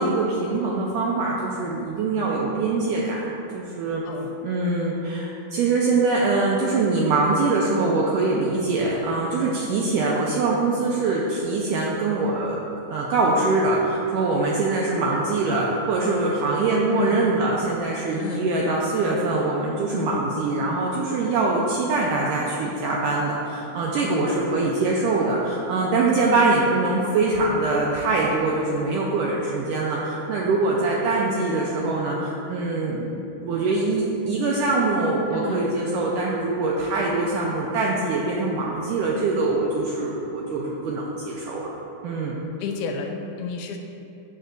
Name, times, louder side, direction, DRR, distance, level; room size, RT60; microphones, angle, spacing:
voice 1, 0.0-3.2 3.5-4.0 4.4-12.6 12.9-41.7 42.0-42.4, right 3 dB, 85° right, -3 dB, 1.9 m, -23 dB
voice 2, 35.3-35.6 42.6-43.8, left 5 dB, 85° left, 4 dB, 2.5 m, -32 dB
14.5 x 5.4 x 2.6 m, 2.8 s
omnidirectional pair, 4.4 m